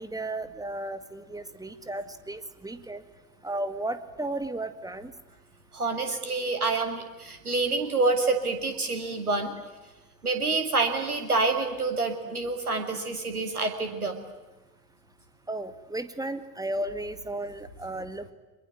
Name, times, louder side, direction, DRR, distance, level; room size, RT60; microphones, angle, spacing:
voice 1, 0.0-3.0 3.4-5.1 15.5-18.3, right 1 dB, 10° right, 11 dB, 2.0 m, -34 dB
voice 2, 5.7-9.5 10.2-14.2, right 3 dB, 85° right, 7 dB, 2.5 m, -27 dB
24.0 x 22.0 x 9.2 m, 1.1 s
figure-of-eight pair, 60°, 44 cm